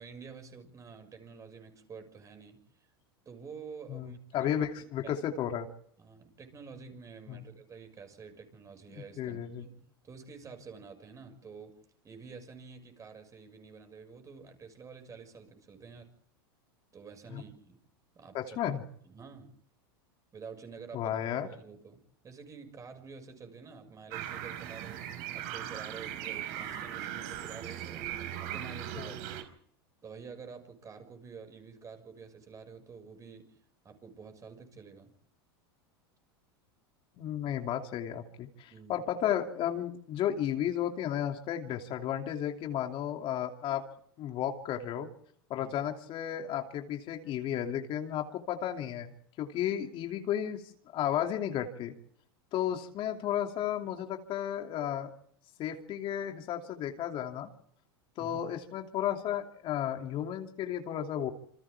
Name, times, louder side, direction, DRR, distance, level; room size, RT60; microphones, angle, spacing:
voice 1, 0.0-2.6 3.2-4.6 5.0-5.2 6.0-11.7 12.0-16.1 16.9-17.8 18.1-18.6 19.0-19.6 20.3-21.1 21.4-25.0 25.3-28.1 28.4-29.4 30.0-33.6 33.8-35.1 38.7-39.1 45.6-45.7 58.2-58.4, right 5 dB, 25° right, 7 dB, 6.4 m, -49 dB
voice 2, 3.9-5.7 7.3-7.5 8.9-9.7 17.3-17.4 18.3-18.8 20.9-21.5 29.0-29.1 37.2-43.9 44.2-45.1 45.5-50.6 50.9-51.9 52.5-55.1 55.6-57.5 58.2-61.3, left 10 dB, 45° left, 4 dB, 2.8 m, -33 dB
sound 1, 24.1-29.4, right 11 dB, 60° right, 4.9 m, -39 dB
28.0 x 26.0 x 3.6 m, 0.66 s
hypercardioid pair, 110°, 13 cm